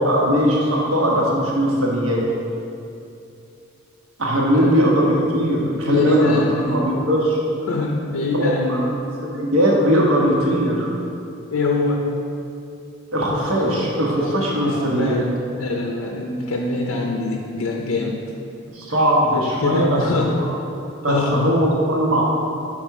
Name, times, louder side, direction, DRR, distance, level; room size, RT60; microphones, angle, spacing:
voice 1, 0.0-2.2 4.2-6.4 6.7-7.4 8.3-8.8 9.2-10.9 13.1-15.2 18.7-20.5 21.0-22.2, equal, 65° right, -4 dB, 1.3 m, -19 dB
voice 2, 4.4-4.8 5.6-6.8 7.7-8.9 11.5-12.1 14.6-15.3 15.6-18.2 19.6-20.4 21.1-21.4, left 3 dB, 85° left, 0 dB, 0.5 m, -23 dB
5.9 x 4.4 x 4.7 m, 2.6 s
head